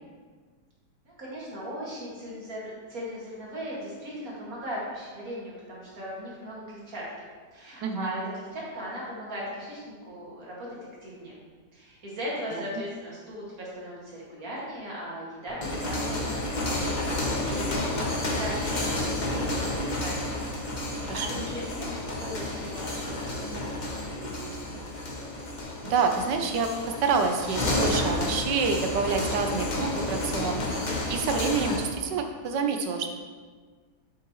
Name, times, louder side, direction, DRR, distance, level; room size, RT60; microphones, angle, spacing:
voice 1, 1.0-11.4 11.7-20.4 20.7-20.8 21.1-23.8 24.1-24.9, equal, 55° right, -6 dB, 2.6 m, -38 dB
sound 1, 15.5-31.9, left 1 dB, 35° left, 0.9 m, -31 dB
voice 2, 21.0-21.4 25.8-30.6 31.1-33.2, right 5 dB, 80° right, 5 dB, 1.4 m, -27 dB
7.9 x 7.4 x 3.1 m, 1.5 s
omnidirectional pair, 1.8 m